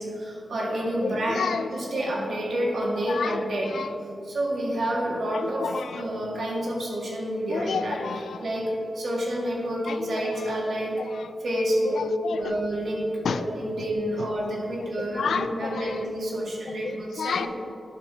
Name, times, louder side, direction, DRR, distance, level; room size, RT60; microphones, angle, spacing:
voice 1, 0.0-3.7 4.3-5.7 6.0-8.0 8.4-8.7 8.9-11.0 11.4-12.0 12.3-17.4, right 1 dB, 70° right, -3 dB, 2.0 m, -28 dB
voice 2, 1.0-2.4 3.1-3.9 5.3-6.1 7.5-8.4 9.9-10.6 11.0-11.3 11.8-12.6 13.2-13.4 15.0-16.1 16.6-17.5, left 6 dB, 85° left, 11 dB, 0.4 m, -32 dB
11.0 x 5.8 x 4.4 m, 2.6 s
wide cardioid pair, 105°, 0 cm